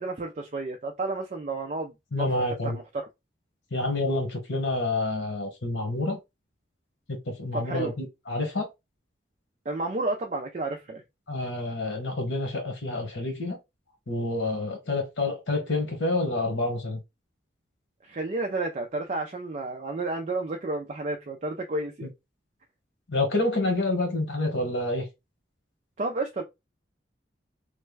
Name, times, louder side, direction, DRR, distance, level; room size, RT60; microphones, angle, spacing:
voice 1, 0.0-2.8 7.5-7.9 9.7-11.0 18.0-22.1 26.0-26.4, right 2 dB, 40° right, 0.4 m, -31 dB
voice 2, 2.1-2.8 3.7-6.2 7.1-8.7 11.3-13.6 14.1-17.0 22.0-22.1 23.1-25.0, left 2 dB, 90° left, 1.2 m, -28 dB
3.2 x 2.2 x 3.2 m
head